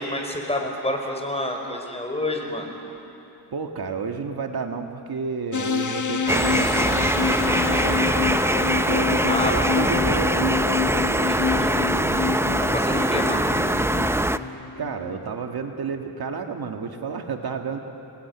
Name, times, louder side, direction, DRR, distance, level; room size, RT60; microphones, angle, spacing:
voice 1, 0.0-2.7 9.3-9.5 11.2-11.8 12.7-13.4, left 1 dB, 15° left, 2 dB, 5.1 m, -29 dB
voice 2, 3.5-8.1 8.9-10.6 14.8-17.8, right 5 dB, 60° right, 4 dB, 1.9 m, -31 dB
sound 1, 5.5-15.3, left 6 dB, 45° left, 1.4 m, -27 dB
sound 2, 6.3-14.4, right 1 dB, 5° right, 0.7 m, -23 dB
29.5 x 20.5 x 9.6 m, 3.0 s
cardioid pair, 90°, 41 cm